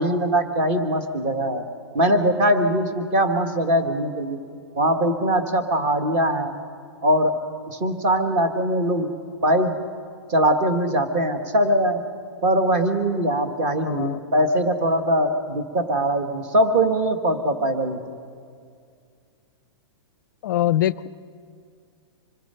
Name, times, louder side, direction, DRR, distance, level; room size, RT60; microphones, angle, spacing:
voice 1, 0.0-1.6 1.9-4.4 4.8-6.5 7.0-7.4 7.7-9.1 9.4-9.7 10.3-12.0 12.4-18.0, right 1 dB, 25° right, 7 dB, 1.4 m, -21 dB
voice 2, 13.8-14.2 20.4-21.1, left 13 dB, 45° left, 17 dB, 0.4 m, -23 dB
26.5 x 19.5 x 5.6 m, 2.2 s
hypercardioid pair, 175°, 15 cm